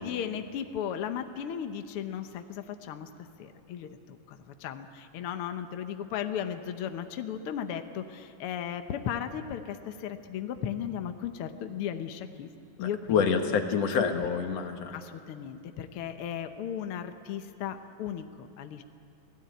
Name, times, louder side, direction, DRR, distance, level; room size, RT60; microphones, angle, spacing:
voice 1, 0.0-2.3 2.9-3.1 3.7-3.9 4.6-4.8 5.1-8.0 8.4-9.6 10.0-12.5 12.8-13.3 14.0-14.1 14.9-15.0 15.3-18.2 18.6-18.8, left 9 dB, 80° left, 7 dB, 1.2 m, -35 dB
voice 2, 12.8-15.0, left 6 dB, 55° left, 5 dB, 2.4 m, -27 dB
29.0 x 18.0 x 9.3 m, 2.6 s
omnidirectional pair, 3.9 m